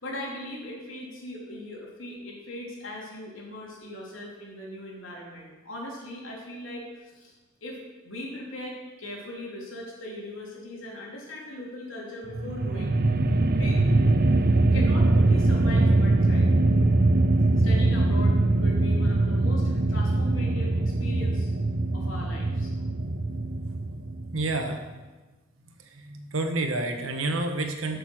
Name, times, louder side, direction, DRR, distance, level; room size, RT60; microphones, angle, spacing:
voice 1, 0.0-7.3 7.6-7.8 8.0-12.9 13.5-13.8 14.7-16.5 17.5-21.5 21.9-22.7, left 1 dB, 75° left, -3 dB, 3.4 m, -39 dB
sound 1, 12.3-24.6, right 2 dB, 50° right, 0.6 m, -22 dB
voice 2, 24.3-24.8 25.9-28.0, right 2 dB, 80° right, 5 dB, 1.4 m, -29 dB
12.5 x 6.6 x 6.3 m, 1.2 s
head